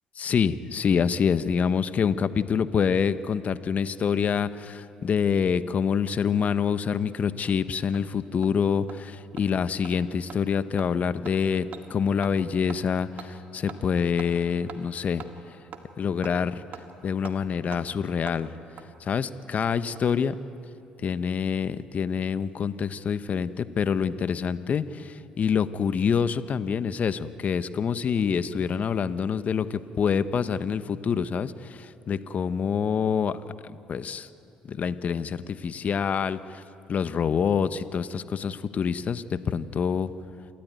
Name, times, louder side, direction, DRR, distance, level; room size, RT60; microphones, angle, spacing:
voice 1, 0.2-15.2 16.0-16.6 17.0-18.5 19.0-20.3 21.0-33.4 33.9-34.3 34.7-36.6 36.9-40.1, left 6 dB, 50° left, 13 dB, 1.0 m, -26 dB
Hammer, 7.0-7.1 7.5-7.6 7.9-8.0 8.4-8.5 8.9-9.0 9.4-9.5 9.8-9.9 10.3-10.4 10.8-10.9 11.2-11.4 11.7-11.8 12.2-12.4 12.7-12.8 13.2-13.3 13.7-13.8 14.2-14.3 14.7-14.8 15.2-15.3 15.7-15.8 16.2-16.3 16.7-16.8 17.2-17.4 17.7-17.8 18.3-18.4 18.8-18.9 19.8-20.2 20.4-20.5, right 7 dB, 55° right, 2.1 m, -42 dB
28.0 x 13.5 x 9.5 m, 2.6 s
hypercardioid pair, 55°, 3 cm